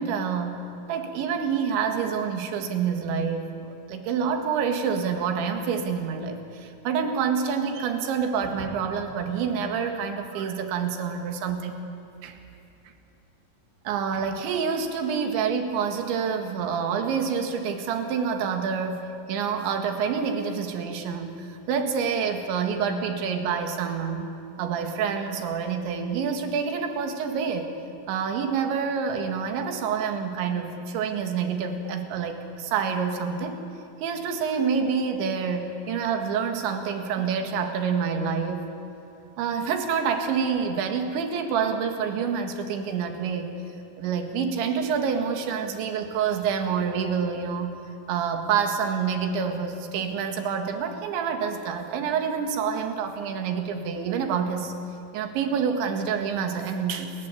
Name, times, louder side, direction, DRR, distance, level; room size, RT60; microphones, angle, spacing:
voice 1, 0.0-3.6 3.9-11.8 12.2-12.4 13.9-24.3 24.6-27.7 28.1-33.6 34.0-38.7 39.4-43.5 44.0-47.8 48.1-54.7 55.1-57.1, right 6 dB, 75° right, 6 dB, 4.2 m, -27 dB
29.0 x 21.5 x 8.5 m, 2.8 s
omnidirectional pair, 5.4 m